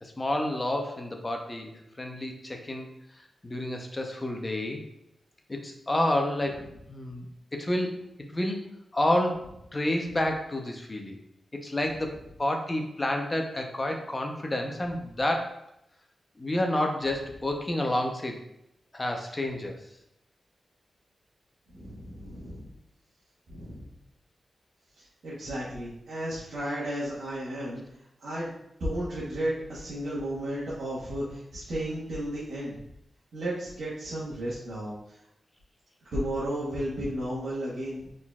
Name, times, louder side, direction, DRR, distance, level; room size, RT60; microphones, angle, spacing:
voice 1, 0.0-2.9 3.4-4.8 5.5-8.6 8.9-11.2 11.5-15.6 16.4-18.4 18.9-19.8, left 1 dB, 25° left, 3 dB, 0.7 m, -29 dB
voice 2, 21.7-22.7 23.5-23.9 25.0-27.8 28.2-28.5 28.8-32.8 33.3-35.2 36.1-38.1, right 1 dB, 80° right, -9 dB, 1.2 m, -33 dB
4.4 x 3.8 x 2.4 m, 0.83 s
cardioid pair, 80°, 0 cm